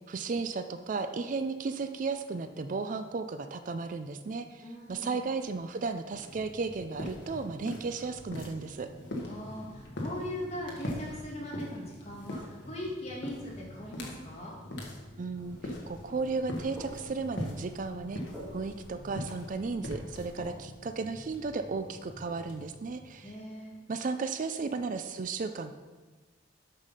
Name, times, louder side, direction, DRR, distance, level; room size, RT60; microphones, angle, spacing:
voice 1, 0.1-8.9 15.2-18.2 18.5-23.4 23.9-25.7, right 4 dB, 40° right, 9 dB, 0.3 m, -34 dB
voice 2, 4.6-5.2 9.2-14.6 23.2-23.7, equal, 30° left, -3 dB, 2.0 m, -40 dB
sound 1, 6.1-23.6, left 1 dB, 60° left, 1.6 m, -42 dB
sound 2, 15.4-20.4, equal, 5° right, 1.7 m, -51 dB
8.1 x 5.6 x 5.6 m, 1.3 s
head